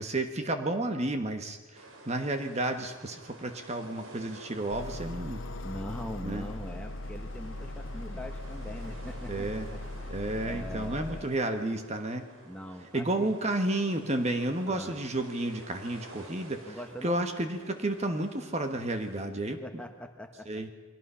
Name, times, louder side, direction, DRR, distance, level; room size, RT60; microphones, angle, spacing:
voice 1, 0.0-5.4 6.2-6.5 9.3-9.7 10.1-12.3 12.9-19.6 20.5-20.7, right 1 dB, 30° right, 6 dB, 1.3 m, -31 dB
sound 1, 1.7-19.3, right 2 dB, 80° right, 3.7 m, -51 dB
sound 2, 4.7-11.2, left 1 dB, 65° left, 0.9 m, -39 dB
voice 2, 5.6-10.1 10.4-11.5 12.4-13.3 14.7-15.0 16.6-17.2 19.6-20.6, left 1 dB, 5° left, 5 dB, 1.3 m, -42 dB
29.0 x 22.0 x 5.7 m, 1.2 s
head